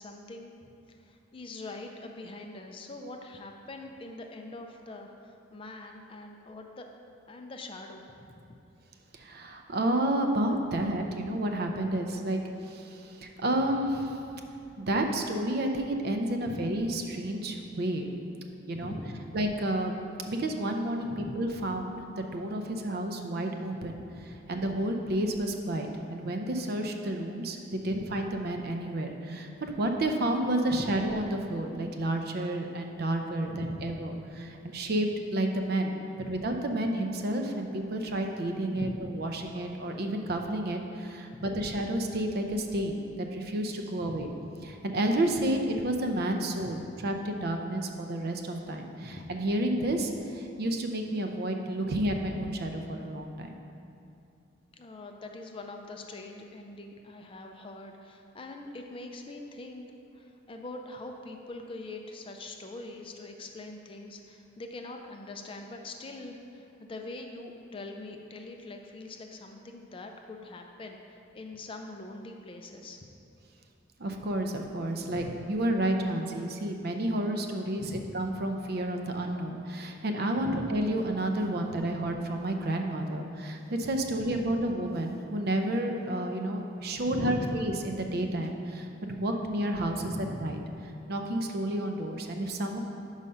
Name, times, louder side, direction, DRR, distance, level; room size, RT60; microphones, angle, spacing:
voice 1, 0.0-6.9 7.3-8.6 16.5-16.7 18.7-19.3 21.0-21.3 24.1-24.4 27.9-28.1 30.7-31.1 33.4-34.0 36.2-36.4 38.7-39.1 41.3-41.6 44.0-44.3 46.6-46.9 49.0-49.3 54.7-59.9 60.1-73.0 75.1-75.4 77.8-78.2 80.4-80.8 84.1-84.7 87.1-87.7 90.0-90.6, left 2 dB, 25° left, 3 dB, 0.4 m, -42 dB
voice 2, 9.1-14.2 14.8-18.1 18.7-18.9 19.3-19.9 20.3-24.0 24.5-34.1 34.4-36.0 36.3-44.3 44.6-53.5 74.0-90.0 90.4-90.6 91.1-92.8, right 1 dB, 50° right, 4 dB, 0.5 m, -30 dB
5.6 x 4.8 x 5.3 m, 2.6 s
head